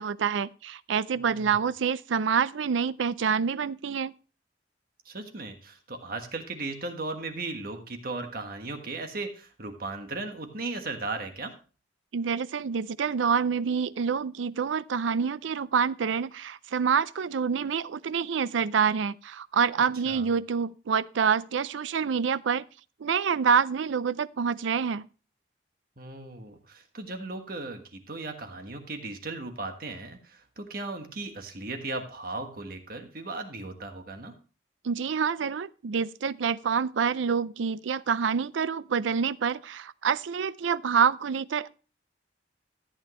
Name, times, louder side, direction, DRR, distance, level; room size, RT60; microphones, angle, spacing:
voice 1, 0.0-4.1 12.1-22.7 23.0-25.1 34.8-41.7, right 6 dB, 85° right, 0.4 m, -27 dB
voice 2, 1.2-1.5 5.0-11.5 20.0-20.3 26.0-34.3, right 3 dB, 50° right, 1.4 m, -37 dB
14.0 x 8.7 x 3.1 m
head